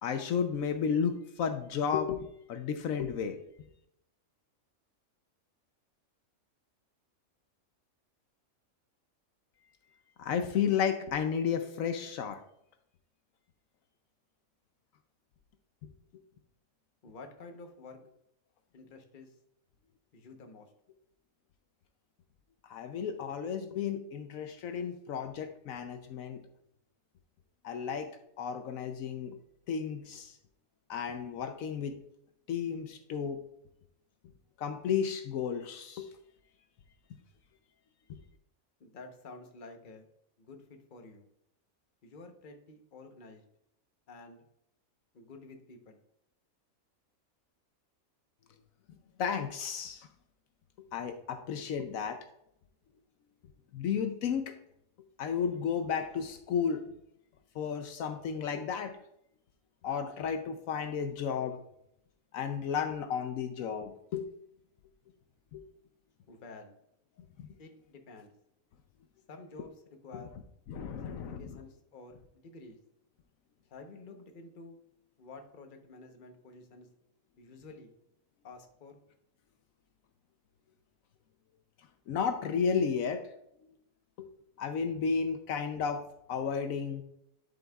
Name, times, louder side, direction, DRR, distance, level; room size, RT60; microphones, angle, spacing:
voice 1, 0.0-3.4 10.2-12.4 22.6-26.4 27.6-29.4 29.7-30.3 30.9-32.0 32.5-33.4 34.6-36.1 49.2-50.1 50.9-52.2 53.7-54.5 55.2-56.9 57.5-58.9 59.8-61.6 62.3-64.3 65.5-65.6 70.1-70.2 70.7-71.5 82.1-83.3 84.2-84.3 84.6-87.0, left 7 dB, 75° left, 7 dB, 1.0 m, -33 dB
voice 2, 17.0-18.0 18.7-19.3 20.1-20.7 38.8-40.1 40.4-40.6 40.9-41.3 42.0-43.4 44.1-44.4 45.1-46.0 66.3-66.7 67.6-68.3 69.3-69.8 70.0-70.4 71.0-71.1 71.4-72.8 73.7-74.8 75.2-76.9 77.4-77.9 78.4-79.0, left 3 dB, 40° left, 4 dB, 1.0 m, -50 dB
11.0 x 5.4 x 2.3 m, 0.76 s
omnidirectional pair, 1.5 m